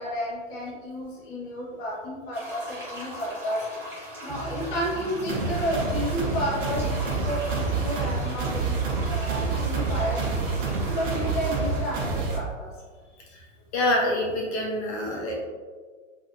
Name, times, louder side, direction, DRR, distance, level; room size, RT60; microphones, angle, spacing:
voice 1, 0.0-3.7 4.2-10.3 10.9-12.7 15.2-15.3, equal, 25° left, -7 dB, 0.9 m, -31 dB
sound 1, 2.3-11.8, equal, 5° right, 0.7 m, -40 dB
sound 2, 4.3-11.8, right 6 dB, 75° right, 0.7 m, -33 dB
sound 3, 5.3-12.4, right 3 dB, 40° right, 0.7 m, -29 dB
voice 2, 13.7-15.4, left 1 dB, 55° left, -3 dB, 1.1 m, -26 dB
3.7 x 2.6 x 2.5 m, 1.5 s
hypercardioid pair, 140°, 38 cm